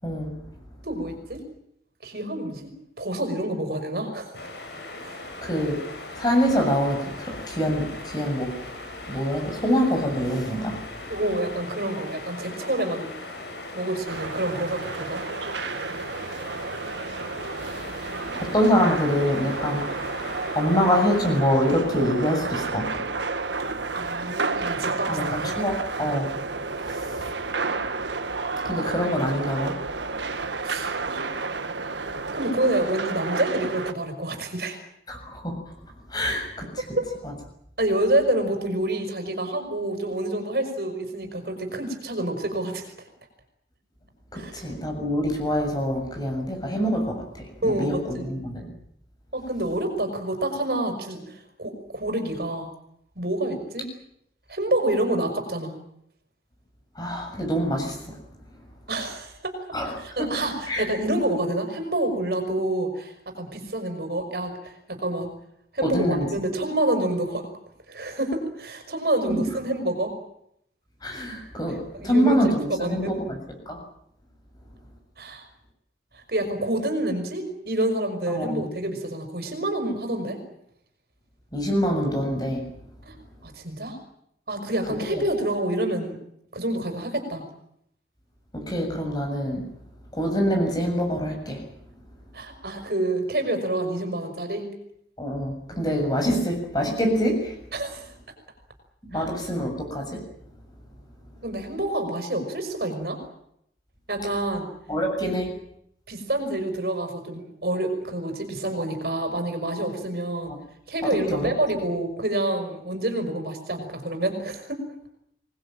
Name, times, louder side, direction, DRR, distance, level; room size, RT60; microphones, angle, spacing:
voice 1, 0.8-1.4 2.0-2.7 3.0-4.3 5.0-5.3 11.1-13.1 13.7-15.2 23.6-25.6 30.1-30.3 30.6-31.3 32.0-34.8 37.0-37.1 37.8-42.9 44.4-44.7 47.6-48.4 49.3-52.7 53.2-53.9 54.5-55.7 58.9-59.6 59.9-65.3 65.7-67.4 67.9-70.1 71.7-73.2 75.2-75.4 76.1-80.4 83.1-83.2 83.4-84.0 84.5-86.2 86.5-87.4 92.3-94.7 97.7-98.1 99.1-99.3 101.4-103.2 104.1-104.7 105.2-105.4 106.1-110.5 110.9-114.8, right 1 dB, 65° right, 5 dB, 5.7 m, -28 dB
sound 1, 4.3-21.4, left 2 dB, 75° left, 7.6 m, -39 dB
voice 2, 5.4-5.8 6.2-8.5 9.1-10.8 18.3-19.9 20.6-23.1 25.1-26.3 27.1-27.3 28.7-29.8 35.1-35.6 36.1-36.8 44.3-48.7 57.0-58.0 59.7-59.9 60.2-60.9 65.8-66.3 69.3-69.4 71.0-73.4 73.7-73.8 78.3-78.7 81.5-82.6 85.1-85.2 88.5-89.6 90.1-91.6 95.2-97.5 99.0-100.2 104.9-105.5 110.5-110.6 111.3-111.5, equal, 20° left, 3 dB, 7.0 m, -25 dB
sound 2, 14.1-33.9, right 4 dB, 90° right, 1.8 m, -31 dB
25.0 x 20.0 x 9.0 m, 0.73 s
head